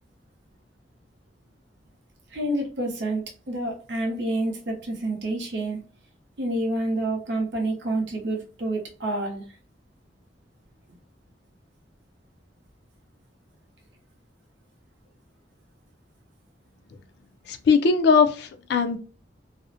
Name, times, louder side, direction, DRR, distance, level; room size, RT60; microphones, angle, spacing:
voice 1, 2.3-5.8 6.4-9.4, right 1 dB, 70° right, 1 dB, 0.7 m, -28 dB
voice 2, 17.5-19.0, left 5 dB, 65° left, 8 dB, 0.3 m, -20 dB
2.5 x 2.0 x 2.6 m, 0.36 s
head